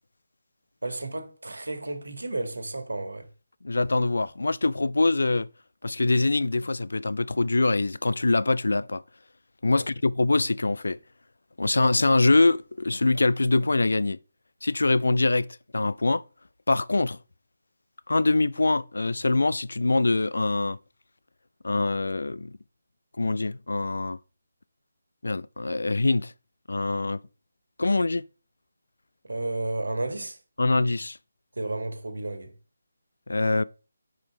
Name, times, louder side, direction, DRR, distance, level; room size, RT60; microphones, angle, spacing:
voice 1, 0.8-3.3 9.7-9.8 29.2-30.4 31.5-32.6, right 2 dB, 70° right, 1.6 m, -32 dB
voice 2, 3.6-5.5 5.8-9.0 9.6-11.0 11.6-14.2 14.6-15.5 15.7-16.2 16.7-17.2 18.1-20.8 21.6-22.5 23.2-24.2 25.2-26.3 26.7-27.2 27.8-28.2 30.6-31.2 33.3-33.6, left 2 dB, 65° left, 0.4 m, -24 dB
5.9 x 4.9 x 4.7 m
figure-of-eight pair, 150°, 0 cm